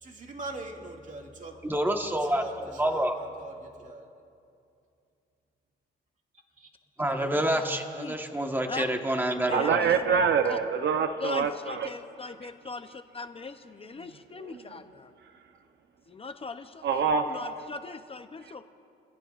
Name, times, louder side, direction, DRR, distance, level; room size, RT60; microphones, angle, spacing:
voice 1, 0.0-1.6 2.2-4.1 6.6-6.7, right 2 dB, 40° right, 1 dB, 2.2 m, -42 dB
voice 2, 1.6-2.4 2.8-3.2 7.0-10.3, right 1 dB, 10° right, 4 dB, 1.3 m, -28 dB
voice 3, 8.7-9.2 9.5-10.0 10.4-10.6 11.2-15.1 16.1-16.8 17.3-18.6, left 4 dB, 30° left, 8 dB, 0.7 m, -40 dB
voice 4, 9.5-11.9 16.8-17.3, right 6 dB, 65° right, 7 dB, 0.8 m, -25 dB
28.5 x 15.5 x 2.5 m, 2.5 s
cardioid pair, 90°, 20 cm